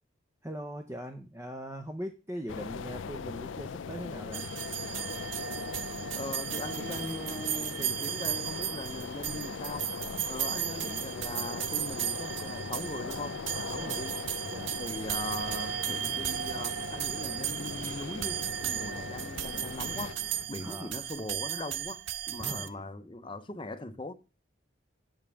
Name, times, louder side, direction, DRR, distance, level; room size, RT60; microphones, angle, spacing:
voice 1, 0.4-4.5 13.7-14.1 14.5-14.7 20.6-21.1 22.4-22.8, equal, 15° right, 0.7 m, -41 dB
sound 1, 2.5-20.1, left 5 dB, 80° left, 0.4 m, -40 dB
sound 2, 4.3-22.7, right 11 dB, 75° right, 0.6 m, -35 dB
voice 2, 6.2-14.2 14.8-20.2 20.5-22.0 22.3-24.1, left 2 dB, 25° left, 0.7 m, -40 dB
sound 3, 15.4-20.5, left 2 dB, 55° left, 1.0 m, -49 dB
7.4 x 5.2 x 6.9 m
head